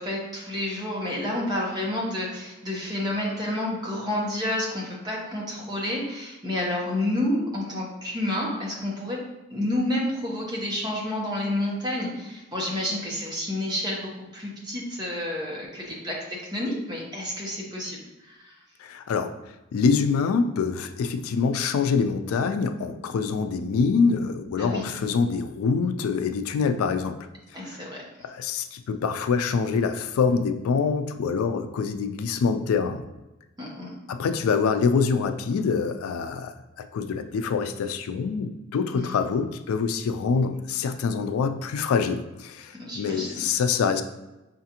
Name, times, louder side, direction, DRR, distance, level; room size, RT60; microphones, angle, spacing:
voice 1, 0.0-9.2 9.5-18.5 24.6-24.9 27.5-28.3 33.6-33.9 38.9-39.1 42.8-43.5, left 1 dB, 20° right, -3 dB, 0.8 m, -30 dB
voice 2, 18.8-19.3 19.7-27.8 28.2-33.0 34.1-44.0, left 5 dB, 85° left, 8 dB, 0.3 m, -25 dB
5.6 x 2.5 x 2.8 m, 1.0 s
head